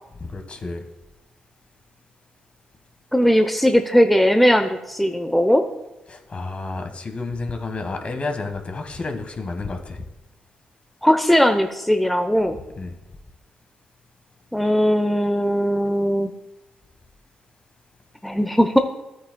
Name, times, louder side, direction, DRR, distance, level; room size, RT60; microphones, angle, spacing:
voice 1, 0.2-0.8 6.1-10.0 12.8-13.0, left 3 dB, 45° left, 5 dB, 1.5 m, -30 dB
voice 2, 3.1-5.6 11.0-12.6 14.5-16.3 18.2-18.8, equal, 5° left, 6 dB, 0.8 m, -18 dB
13.0 x 8.2 x 2.3 m, 1.0 s
supercardioid pair, 50°, 3 cm